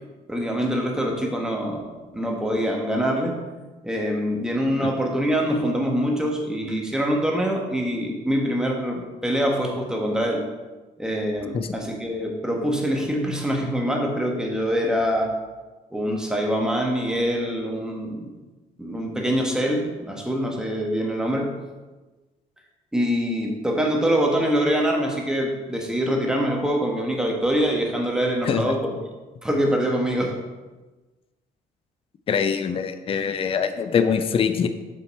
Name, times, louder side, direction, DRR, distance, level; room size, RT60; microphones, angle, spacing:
voice 1, 0.3-3.4 3.8-10.4 11.0-15.4 15.9-18.3 18.8-21.6 22.9-29.0 29.4-30.4, equal, 5° right, 0 dB, 1.3 m, -24 dB
voice 2, 32.3-34.7, left 6 dB, 35° left, 9 dB, 0.5 m, -23 dB
7.3 x 5.2 x 4.2 m, 1.2 s
cardioid pair, 110°, 17 cm